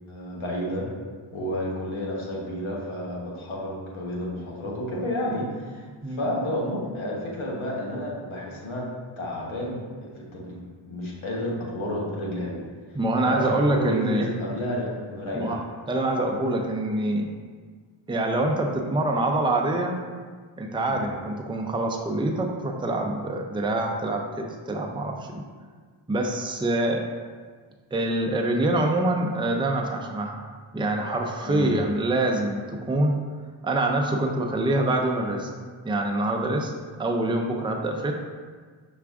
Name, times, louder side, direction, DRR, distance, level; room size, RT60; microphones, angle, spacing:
voice 1, 0.1-0.9 1.3-8.9 9.2-9.8 10.1-12.6 13.2-15.6 20.8-21.0 31.4-31.7, equal, 70° left, -3 dB, 1.3 m, -31 dB
voice 2, 12.9-14.3 15.3-15.6 15.9-17.3 18.1-20.0 20.6-25.4 26.1-27.0 27.9-30.4 30.7-33.2 33.6-35.5 35.8-36.7 37.0-38.1, right 2 dB, 10° right, 1 dB, 0.5 m, -25 dB
5.7 x 2.4 x 3.5 m, 1.5 s
supercardioid pair, 40°, 50 cm